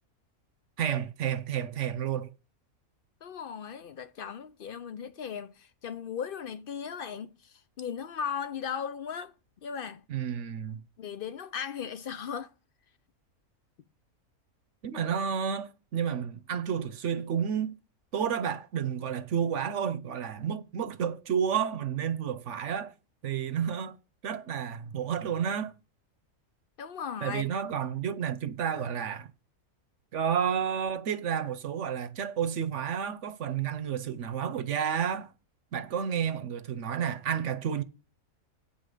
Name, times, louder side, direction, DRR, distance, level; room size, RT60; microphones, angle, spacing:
voice 1, 0.8-2.3 10.1-10.8 14.8-17.8 18.1-22.9 23.2-24.0 24.2-25.7 27.2-29.3 30.1-35.3 35.7-37.8, right 8 dB, 60° right, 1.0 m, -31 dB
voice 2, 3.2-9.3 9.6-10.0 11.0-12.5 26.8-27.5, left 7 dB, 60° left, 0.5 m, -37 dB
8.7 x 5.6 x 6.5 m
omnidirectional pair, 1.5 m